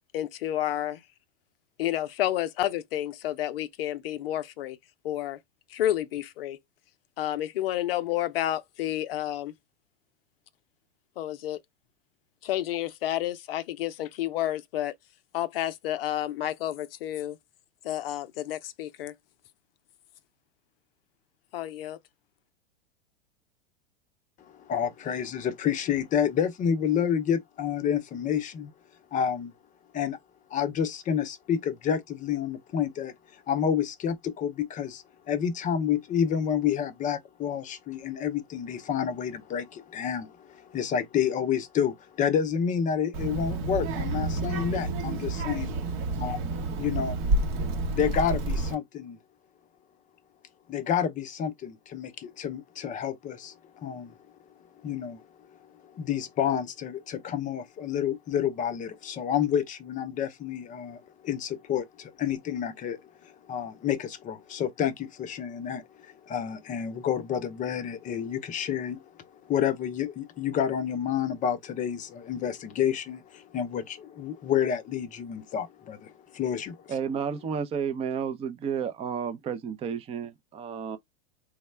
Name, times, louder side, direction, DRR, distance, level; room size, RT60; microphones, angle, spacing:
voice 1, 0.1-1.0 1.8-4.8 5.0-5.4 5.7-6.6 7.2-9.5 11.2-11.6 12.4-14.9 15.3-17.4 17.8-19.1 21.5-22.0, left 13 dB, 65° left, 0.6 m, -30 dB
voice 2, 24.6-28.7 29.1-29.5 29.9-30.2 30.5-33.1 33.5-45.7 46.2-46.4 46.8-47.2 47.9-49.2 50.7-53.5 53.8-54.1 54.8-55.2 55.8-69.0 69.5-76.8, left 8 dB, 25° left, 0.6 m, -29 dB
Child speech kid speaking, 43.1-48.7, right 2 dB, 45° right, 0.8 m, -29 dB
voice 3, 76.9-81.0, right 7 dB, 20° right, 0.5 m, -31 dB
3.4 x 2.1 x 3.2 m
hypercardioid pair, 110°, 31 cm